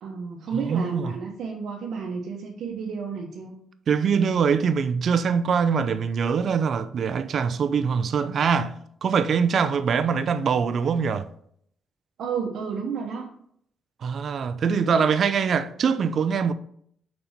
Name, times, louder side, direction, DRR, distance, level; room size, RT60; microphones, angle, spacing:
voice 1, 0.0-3.6 12.2-13.3, right 5 dB, 70° right, 1.0 m, -31 dB
voice 2, 0.5-1.1 3.9-11.3 14.0-16.5, right 6 dB, 55° right, 0.6 m, -23 dB
5.3 x 4.3 x 5.6 m
cardioid pair, 90°, 0 cm